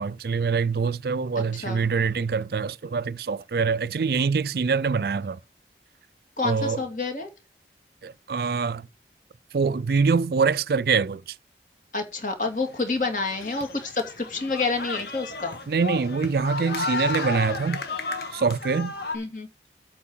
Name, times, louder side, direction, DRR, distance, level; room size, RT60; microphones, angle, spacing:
voice 1, 0.0-5.4 6.4-6.8 8.0-8.9 9.5-11.4 15.7-17.8 18.3-18.9, right 5 dB, 60° right, 0.4 m, -24 dB
voice 2, 6.4-7.3 11.9-15.6 19.1-19.5, left 3 dB, 45° left, 2.6 m, -28 dB
sound 1, 12.4-19.2, left 3 dB, 65° left, 1.6 m, -33 dB
8.6 x 4.6 x 7.2 m
head